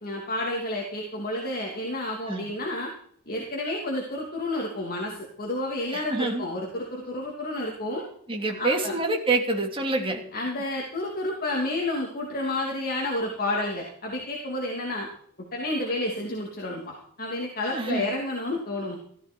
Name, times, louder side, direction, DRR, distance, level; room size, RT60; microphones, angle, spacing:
voice 1, 0.0-2.9 3.3-8.0 8.6-9.0 10.3-15.1 15.5-19.0, left 1 dB, 45° left, -1 dB, 2.9 m, -30 dB
voice 2, 5.9-6.5 8.3-10.2 17.7-18.1, right 2 dB, 25° right, 2 dB, 2.9 m, -27 dB
16.0 x 13.5 x 4.6 m, 0.63 s
head